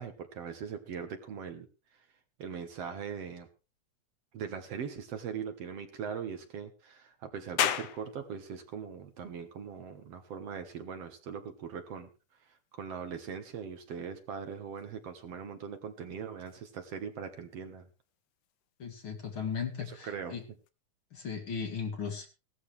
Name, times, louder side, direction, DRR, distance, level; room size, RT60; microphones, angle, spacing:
voice 1, 0.0-1.7 1.9-2.0 2.4-3.5 4.3-12.1 12.4-17.9 19.9-20.4, right 7 dB, 60° right, 7 dB, 2.2 m, -41 dB
sound 1, 7.6-20.7, left 10 dB, 65° left, 1.9 m, -42 dB
voice 2, 18.8-20.4 21.1-22.3, left 6 dB, 45° left, 5 dB, 2.4 m, -37 dB
17.0 x 13.5 x 3.3 m, 0.31 s
omnidirectional pair, 3.4 m